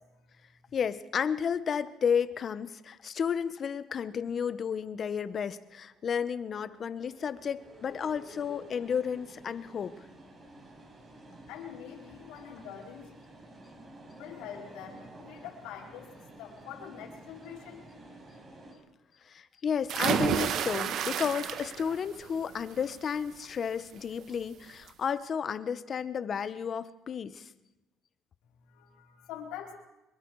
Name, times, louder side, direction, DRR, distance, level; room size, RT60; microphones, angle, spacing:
voice 1, 0.7-9.9 19.3-27.5, left 7 dB, 45° left, 13 dB, 1.1 m, -32 dB
sound 1, 4.7-18.7, equal, 30° right, 5.5 m, -52 dB
voice 2, 11.5-13.1 14.1-16.1 16.4-17.8 28.7-29.7, left 8 dB, 85° left, 0 dB, 4.5 m, -44 dB
sound 2, 19.9-22.0 22.4-22.8 24.2-24.3 24.7-24.8, right 9 dB, 60° right, 1.4 m, -30 dB
24.5 x 22.5 x 4.8 m, 1.0 s
cardioid pair, 100°, 0 cm